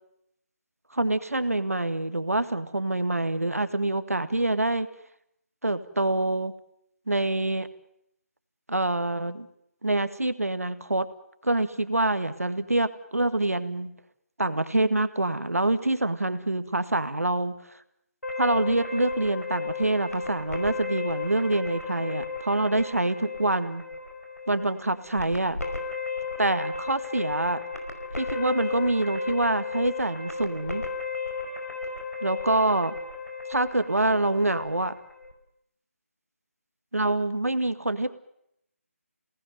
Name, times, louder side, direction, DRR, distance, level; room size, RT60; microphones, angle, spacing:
voice 1, 0.9-4.9 5.6-6.5 7.1-7.7 8.7-9.5 9.8-11.1 11.4-13.9 14.4-17.6 18.4-23.8 24.5-25.6 26.4-27.6 28.1-30.8 32.2-32.9 33.5-34.9 36.9-38.1, right 2 dB, 75° right, 11 dB, 2.0 m, -26 dB
sound 1, 18.2-35.3, left 4 dB, 80° left, 5.1 m, -35 dB
28.5 x 19.0 x 9.3 m, 0.79 s
figure-of-eight pair, 155°, 8 cm